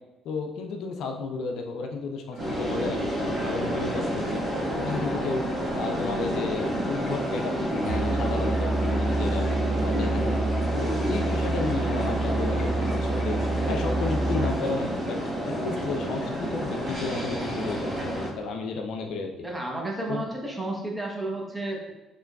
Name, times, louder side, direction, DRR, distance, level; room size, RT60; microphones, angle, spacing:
voice 1, 0.2-4.4 4.8-5.4 5.7-9.5 9.8-10.4 10.7-13.4 13.7-15.2 15.4-19.5 20.1-20.2, left 4 dB, 70° left, 4 dB, 0.4 m, -33 dB
Wind chime, 2.3-3.0 3.3-17.9, left 1 dB, 50° left, 1.0 m, -47 dB
sound 1, 2.4-18.3, equal, 60° right, 1.4 m, -29 dB
Musical instrument, 7.8-14.7, right 2 dB, 35° right, 0.5 m, -28 dB
voice 2, 19.4-21.9, right 2 dB, 15° right, 0 dB, 0.9 m, -32 dB
4.3 x 3.0 x 2.3 m, 1.1 s
hypercardioid pair, 55°, 0 cm